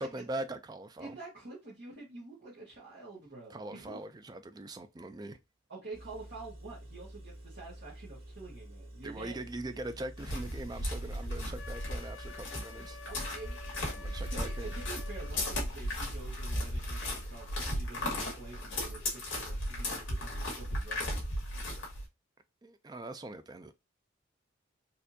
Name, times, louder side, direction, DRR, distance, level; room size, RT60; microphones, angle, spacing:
voice 1, 0.0-1.2 3.5-5.4 9.0-13.0 13.9-14.7 22.6-23.7, right 2 dB, 20° right, 0.3 m, -41 dB
voice 2, 1.0-4.0 5.7-9.4 13.1-21.2, right 3 dB, 55° right, 1.2 m, -48 dB
Engine, 5.9-16.4, right 1 dB, 80° right, 1.7 m, -49 dB
sound 1, 10.2-22.1, left 1 dB, 65° left, 1.7 m, -36 dB
Wind instrument woodwind instrument, 11.6-15.4, left 6 dB, 90° left, 0.6 m, -50 dB
4.3 x 2.6 x 2.6 m
head